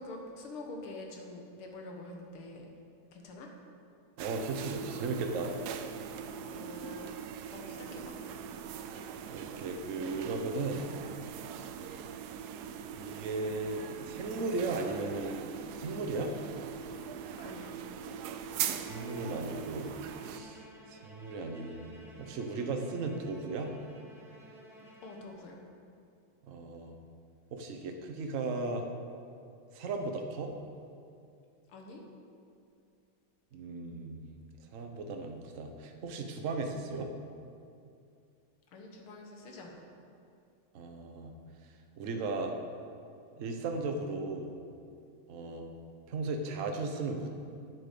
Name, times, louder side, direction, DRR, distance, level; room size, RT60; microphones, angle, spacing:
voice 1, 0.0-2.7 3.1-3.5 6.1-7.2 7.5-8.2 11.4-11.5 17.4-17.8 25.0-25.6 31.7-32.0 38.7-39.9, left 2 dB, 80° left, 1 dB, 2.2 m, -46 dB
voice 2, 4.2-5.5 9.3-10.9 11.5-11.7 12.9-15.5 15.8-16.3 18.8-19.9 20.2-21.8 22.2-23.7 26.4-27.0 27.5-28.8 29.7-30.5 33.5-34.2 34.7-37.1 40.7-41.3 42.0-42.5 43.4-44.5 45.3-45.7 46.1-47.3, right 3 dB, 50° right, 4 dB, 1.0 m, -36 dB
sound 1, 4.2-20.4, right 8 dB, 85° right, 0.8 m, -41 dB
Bowed string instrument, 18.7-25.7, equal, ahead, 1.2 m, -53 dB
9.0 x 7.8 x 6.7 m, 2.5 s
omnidirectional pair, 2.3 m